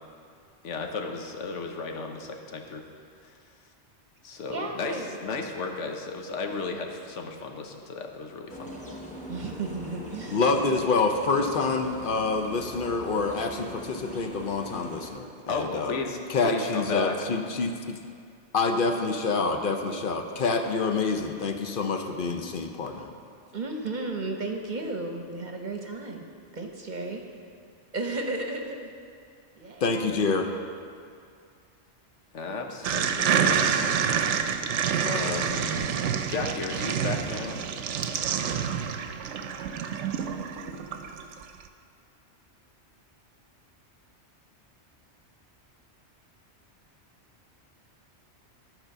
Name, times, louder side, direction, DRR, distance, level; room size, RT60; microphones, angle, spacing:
voice 1, 0.6-2.9 3.2-3.4 4.2-5.0 5.2-8.7 15.5-17.1 32.3-34.2 35.0-35.9 36.3-37.6, left 4 dB, 90° left, 3 dB, 1.2 m, -34 dB
voice 2, 4.5-5.2 9.3-10.4 23.5-26.3 26.5-27.2 27.9-28.9 29.6-29.9, right 2 dB, 45° right, 3 dB, 0.9 m, -33 dB
sound 1, 8.5-15.1, left 1 dB, 5° left, 1.0 m, -41 dB
voice 3, 10.3-16.0 16.3-18.0 18.5-23.1 29.8-30.5, left 4 dB, 55° left, 5 dB, 0.8 m, -27 dB
sound 2, 32.8-41.4, right 7 dB, 85° right, 0.9 m, -27 dB
13.0 x 4.5 x 6.6 m, 2.3 s
omnidirectional pair, 1.2 m